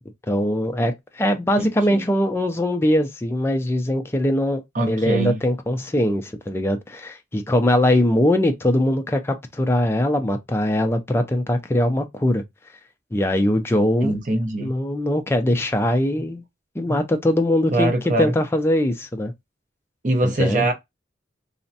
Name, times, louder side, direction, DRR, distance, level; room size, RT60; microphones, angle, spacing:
voice 1, 0.3-12.4 13.1-14.2 14.6-16.4 16.8-17.9 18.2-19.3 20.2-20.6, left 1 dB, 15° left, 0.3 m, -21 dB
voice 2, 1.6-2.1 4.7-5.4 14.0-14.7 17.7-18.3 20.0-20.7, right 2 dB, 45° right, 0.6 m, -23 dB
3.3 x 2.1 x 2.6 m
head